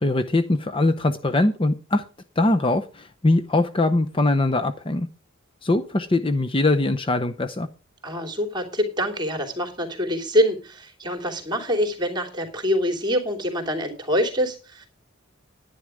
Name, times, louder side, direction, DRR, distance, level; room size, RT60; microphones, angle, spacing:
voice 1, 0.0-2.0 2.4-5.1 5.6-7.7, left 2 dB, 25° left, 9 dB, 0.6 m, -22 dB
voice 2, 8.0-14.9, equal, 20° right, 3 dB, 3.1 m, -25 dB
10.5 x 10.5 x 4.9 m, 0.32 s
head